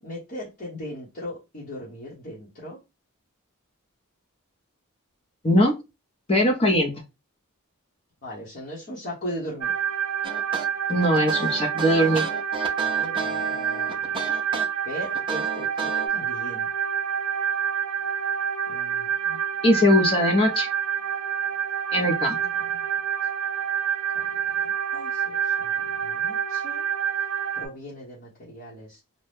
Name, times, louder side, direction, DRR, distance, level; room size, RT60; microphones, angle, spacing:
voice 1, 0.0-2.8 8.2-9.7 12.8-14.4 14.8-16.7 18.7-19.4 22.4-22.8 24.1-25.7 26.0-26.8 27.5-29.0, equal, 45° left, -7 dB, 1.0 m, -39 dB
voice 2, 6.3-6.9 10.9-12.3 19.6-20.7 21.9-22.4, left 1 dB, 25° left, 1 dB, 0.6 m, -20 dB
sound 1, 9.6-27.7, right 8 dB, 65° right, 0.6 m, -27 dB
sound 2, 10.2-16.1, right 3 dB, 25° right, 0.4 m, -33 dB
2.6 x 2.2 x 3.4 m, 0.25 s
head